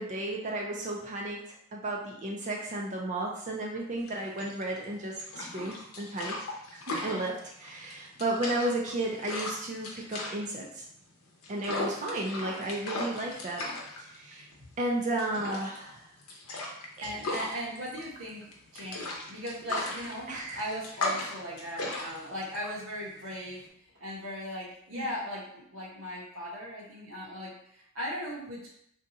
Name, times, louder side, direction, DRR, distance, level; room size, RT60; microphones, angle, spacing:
voice 1, 0.0-6.4 6.7-10.8 11.5-13.7 14.0-14.5 14.8-16.1 17.0-17.1 20.3-20.6 24.9-25.1, right 1 dB, 35° right, -1 dB, 0.4 m, -33 dB
sound 1, 4.0-23.7, left 2 dB, 85° left, 0.7 m, -37 dB
voice 2, 17.0-23.6 24.0-28.7, equal, 65° right, -4 dB, 1.0 m, -38 dB
2.7 x 2.3 x 3.8 m, 0.71 s
head